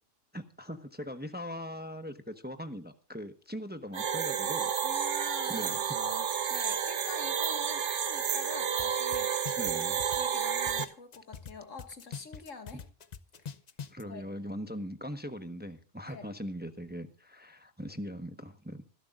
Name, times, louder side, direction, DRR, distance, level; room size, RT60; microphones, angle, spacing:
voice 1, 0.3-4.7 5.5-5.8 9.6-10.0 13.9-18.8, equal, 10° right, 9 dB, 1.1 m, -40 dB
sound 1, 3.9-10.8, right 8 dB, 70° right, 1.2 m, -31 dB
voice 2, 4.8-12.8 14.0-14.3 16.1-16.3, left 3 dB, 80° left, 7 dB, 2.3 m, -46 dB
sound 2, 8.8-8.9 9.1-11.5 11.8-14.0, left 6 dB, 40° left, 0.7 m, -42 dB
26.5 x 11.5 x 2.5 m, 0.38 s
omnidirectional pair, 1.3 m